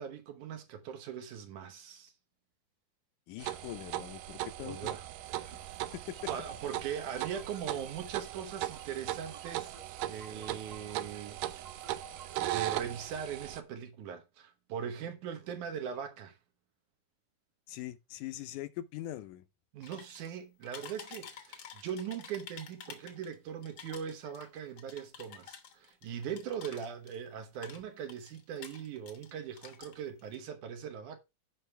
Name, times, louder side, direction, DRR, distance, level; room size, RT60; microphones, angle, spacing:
voice 1, 0.0-2.1 4.3-5.1 5.3-5.6 6.3-9.7 10.0-11.4 12.4-16.4 19.7-31.2, right 8 dB, 75° right, 2.6 m, -40 dB
voice 2, 3.3-5.0 5.9-6.3 17.7-19.4, left 14 dB, 80° left, 2.2 m, -42 dB
sound 1, 3.4-13.6, right 14 dB, 90° right, 2.3 m, -38 dB
sound 2, 5.3-13.3, right 5 dB, 50° right, 2.1 m, -54 dB
sound 3, 19.8-20.3 20.6-23.3 23.6-27.3 27.5-29.3 29.6-30.4, left 7 dB, 55° left, 1.3 m, -50 dB
14.0 x 5.5 x 3.4 m
omnidirectional pair, 3.6 m